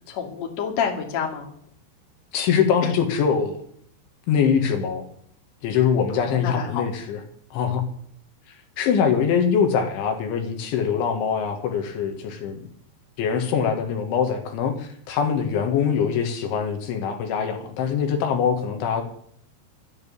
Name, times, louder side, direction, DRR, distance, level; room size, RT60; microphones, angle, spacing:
voice 1, 0.1-1.5 6.1-6.8, left 7 dB, 45° left, 1 dB, 2.7 m, -28 dB
voice 2, 2.3-3.6 4.3-5.1 5.6-7.2 7.5-7.8 8.8-12.6 13.2-19.0, left 7 dB, 70° left, 5 dB, 3.9 m, -23 dB
13.5 x 9.4 x 8.5 m, 0.65 s
omnidirectional pair, 5.9 m